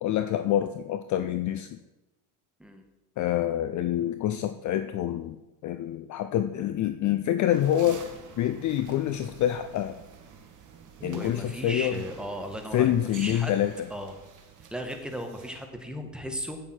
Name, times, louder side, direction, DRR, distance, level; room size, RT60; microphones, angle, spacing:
voice 1, 0.0-1.8 3.2-5.4 5.6-8.0 8.4-10.0 11.0-12.0 12.7-13.9, left 11 dB, 40° left, 10 dB, 0.5 m, -26 dB
sound 1, 7.5-15.6, right 6 dB, 40° right, 1.8 m, -48 dB
voice 2, 11.0-13.5 13.9-14.1 14.7-16.6, equal, ahead, 4 dB, 1.5 m, -36 dB
8.8 x 8.6 x 4.4 m, 1.0 s
supercardioid pair, 95°, 47 cm